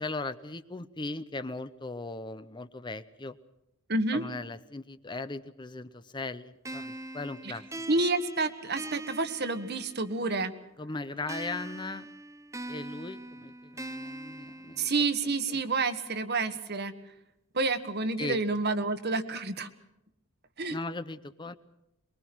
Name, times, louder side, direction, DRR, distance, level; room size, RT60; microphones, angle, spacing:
voice 1, 0.0-3.4 4.1-7.6 10.8-12.1 12.7-14.9 15.5-15.6 18.2-18.4 20.7-21.5, left 3 dB, 20° left, 12 dB, 0.7 m, -38 dB
voice 2, 3.9-4.2 7.4-7.5 7.9-10.5 14.8-16.9 17.5-19.7 20.6-20.8, right 3 dB, 50° right, 9 dB, 1.5 m, -29 dB
sound 1, 6.6-10.3 11.3-15.3, right 2 dB, 15° right, 0.7 m, -42 dB
23.5 x 22.0 x 6.2 m, 0.85 s
head